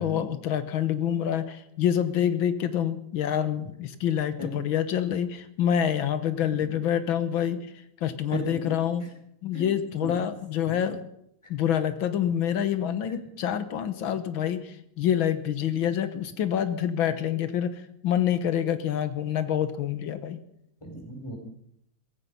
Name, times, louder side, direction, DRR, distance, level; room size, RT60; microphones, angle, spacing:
voice 1, 0.0-9.0 9.4-11.0 11.5-20.4, left 9 dB, 80° left, 12 dB, 1.9 m, -27 dB
voice 2, 20.8-21.4, equal, 15° left, 0 dB, 4.8 m, -34 dB
16.5 x 15.0 x 5.5 m, 0.75 s
omnidirectional pair, 2.2 m